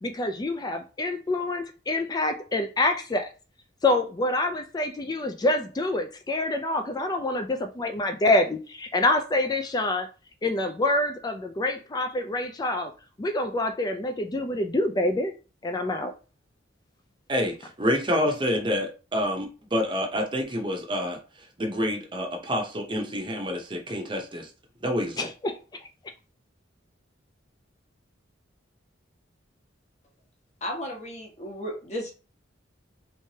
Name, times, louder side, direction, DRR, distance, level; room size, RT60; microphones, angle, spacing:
voice 1, 0.0-3.3 3.8-10.1 10.4-12.9 13.2-15.3 15.6-16.1 25.2-25.6, left 2 dB, 20° left, 7 dB, 0.4 m, -26 dB
voice 2, 17.3-21.2 21.6-24.5 24.8-25.3, equal, 25° right, 2 dB, 0.7 m, -28 dB
voice 3, 30.6-32.1, equal, 35° left, 0 dB, 1.1 m, -34 dB
3.3 x 3.2 x 2.8 m, 0.33 s
head